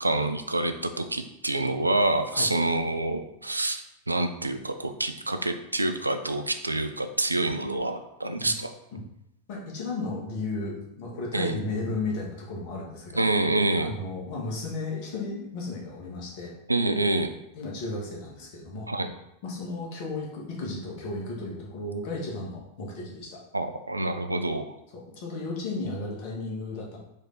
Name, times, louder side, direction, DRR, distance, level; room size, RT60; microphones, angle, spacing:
voice 1, 0.0-8.7 11.3-11.6 13.2-13.9 16.7-17.4 18.9-19.1 23.5-24.7, right 2 dB, 85° right, 8 dB, 0.4 m, -27 dB
voice 2, 9.5-13.3 13.8-16.5 17.5-18.9 19.4-23.4 24.9-27.0, left 2 dB, 45° left, -2 dB, 1.4 m, -34 dB
3.9 x 3.4 x 4.0 m, 0.84 s
figure-of-eight pair, 90°, 0 cm